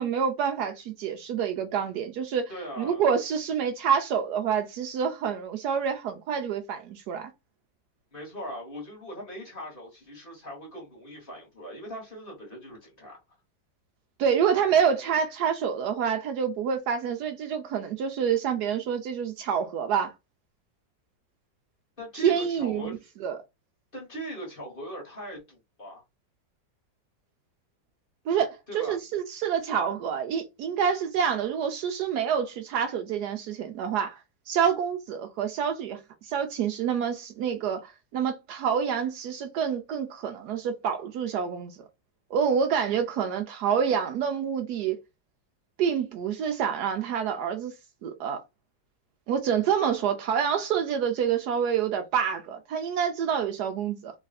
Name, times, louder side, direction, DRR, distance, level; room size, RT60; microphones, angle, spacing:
voice 1, 0.0-2.5 2.8-7.3 14.2-20.1 22.2-23.0 23.2-23.4 28.3-34.2 34.5-41.9 42.3-45.0 45.8-47.7 48.0-48.4 49.3-54.1, right 7 dB, 75° right, 1.0 m, -27 dB
voice 2, 2.5-3.0 8.1-13.2 22.0-23.0 23.9-26.0 28.7-29.0, equal, 30° left, 1.4 m, -40 dB
3.2 x 2.5 x 4.0 m
omnidirectional pair, 1.9 m